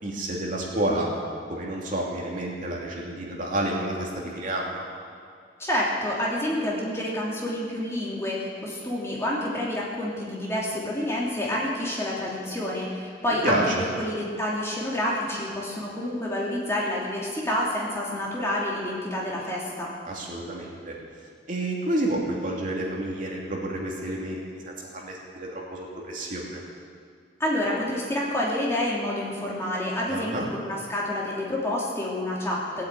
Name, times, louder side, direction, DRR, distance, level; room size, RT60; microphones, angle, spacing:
voice 1, 0.0-1.1 1.5-4.8 13.4-13.8 20.0-21.0 21.5-26.6 30.1-30.5, right 1 dB, 45° right, -2 dB, 2.7 m, -29 dB
voice 2, 5.6-13.6 14.0-19.9 27.4-32.9, left 1 dB, 15° left, -5 dB, 2.9 m, -28 dB
18.0 x 8.5 x 9.1 m, 2.2 s
head